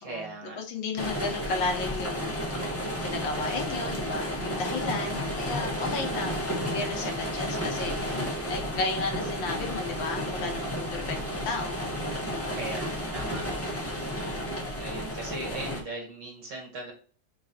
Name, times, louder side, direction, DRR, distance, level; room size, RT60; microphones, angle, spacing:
voice 1, 0.0-0.6 12.5-13.8 14.8-16.9, right 2 dB, 65° right, -1 dB, 1.7 m, -39 dB
voice 2, 0.6-2.6 3.0-11.8 12.4-12.6, left 3 dB, 70° left, 3 dB, 1.5 m, -33 dB
sound 1, 1.0-15.8, equal, 15° left, 0.5 m, -32 dB
4.0 x 3.7 x 2.8 m, 0.43 s
omnidirectional pair, 2.2 m